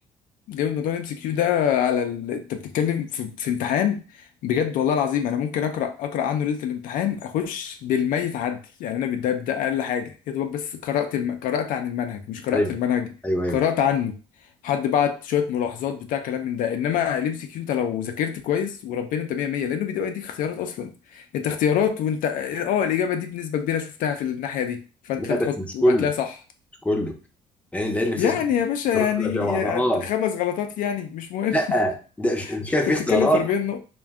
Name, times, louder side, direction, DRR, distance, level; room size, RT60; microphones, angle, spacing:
voice 1, 0.5-13.1 13.5-14.2 14.6-26.3 28.2-31.6 32.9-33.8, left 9 dB, 65° left, 0.4 m, -25 dB
voice 2, 13.2-13.6 25.2-26.1 26.8-27.2 27.7-28.3 28.9-30.1 31.5-33.5, equal, 10° left, 0.6 m, -23 dB
2.5 x 2.1 x 3.4 m
cardioid pair, 95°, 15 cm